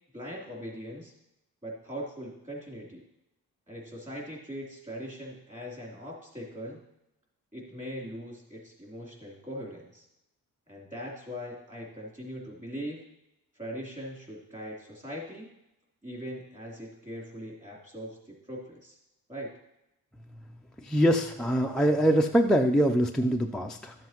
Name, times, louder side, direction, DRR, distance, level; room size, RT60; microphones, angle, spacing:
voice 1, 0.1-1.1 1.6-3.0 3.7-6.8 7.5-10.1 10.7-13.0 13.5-15.5 16.0-19.0 19.3-19.5, equal, 20° right, -3 dB, 3.0 m, -40 dB
voice 2, 20.8-23.9, equal, ahead, 1 dB, 0.4 m, -24 dB
12.5 x 7.6 x 2.9 m, 0.89 s
cardioid pair, 125°, 36 cm